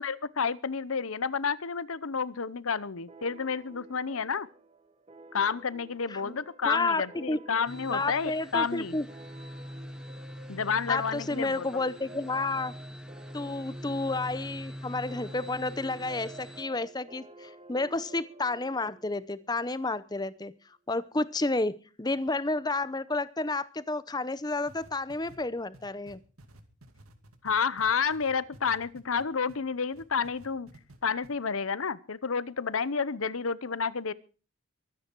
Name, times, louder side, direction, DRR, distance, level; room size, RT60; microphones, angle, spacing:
voice 1, 0.0-4.5 5.3-9.0 10.5-11.7 27.4-30.7 31.0-34.1, left 5 dB, 75° left, 18 dB, 0.8 m, -30 dB
sound 1, 3.1-20.2, right 2 dB, 25° right, 1.3 m, -52 dB
voice 2, 6.6-7.4 7.9-9.1 10.9-12.7 13.3-20.5 20.9-26.2, left 2 dB, 20° left, 16 dB, 0.7 m, -31 dB
sound 2, 7.7-16.6, equal, 5° right, 1.0 m, -43 dB
sound 3, 24.7-29.6 29.9-31.0 31.2-31.3, right 1 dB, 90° right, 2.4 m, -53 dB
23.0 x 9.7 x 4.6 m, 0.37 s
head